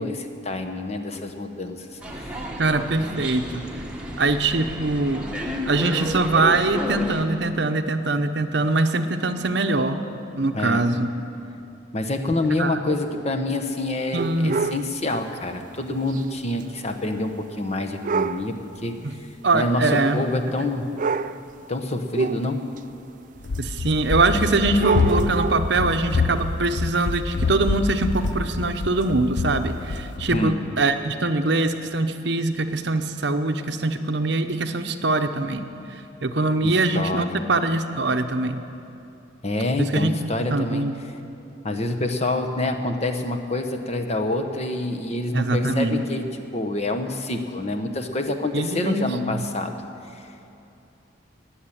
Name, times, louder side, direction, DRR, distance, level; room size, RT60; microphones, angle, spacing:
voice 1, 0.0-2.0 2.2-2.4 2.9-3.3 10.5-10.8 11.9-17.3 17.6-18.9 19.5-20.9 21.7-22.6 30.3-30.5 36.6-37.3 39.4-40.8 41.6-46.2 46.5-49.8, left 2 dB, 35° left, 6 dB, 1.0 m, -27 dB
sound 1, 2.0-7.2, equal, 5° right, 1.3 m, -32 dB
voice 2, 2.6-3.6 4.2-5.3 5.7-10.0 10.3-11.1 12.5-12.8 14.1-14.6 19.0-19.1 19.4-20.2 23.6-38.6 39.8-40.1 40.5-40.9 45.3-46.0 48.5-49.5, right 2 dB, 60° right, 8 dB, 0.8 m, -23 dB
sound 2, 14.2-14.9 16.1-16.2 16.6-16.7 18.0-18.5 19.5-19.6 20.6-20.7 21.0-21.5 22.1-22.8 23.6-23.7 24.7-25.8 28.3-28.4 29.0-29.1 30.0-30.1, right 4 dB, 40° right, 0.3 m, -26 dB
Run, 23.4-30.4, left 4 dB, 60° left, 0.6 m, -26 dB
19.5 x 7.4 x 9.9 m, 2.8 s
head